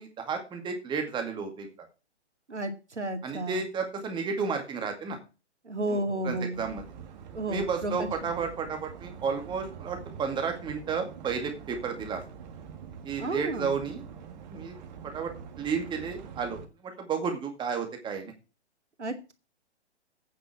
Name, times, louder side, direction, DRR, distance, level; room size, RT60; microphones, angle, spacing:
voice 1, 0.0-1.7 3.2-5.2 5.9-6.0 6.2-6.8 7.5-12.2 13.0-14.0 14.5-14.8 15.0-15.3 15.6-16.6 17.0-18.3, right 5 dB, 15° right, 5 dB, 2.2 m, -32 dB
voice 2, 2.5-3.6 5.6-6.6 7.3-8.1 13.2-13.7 19.0-19.3, right 1 dB, 85° right, 7 dB, 2.3 m, -32 dB
sound 1, 6.5-16.6, right 7 dB, 40° right, 1.8 m, -45 dB
9.2 x 6.1 x 8.4 m, 0.31 s
figure-of-eight pair, 130°, 34 cm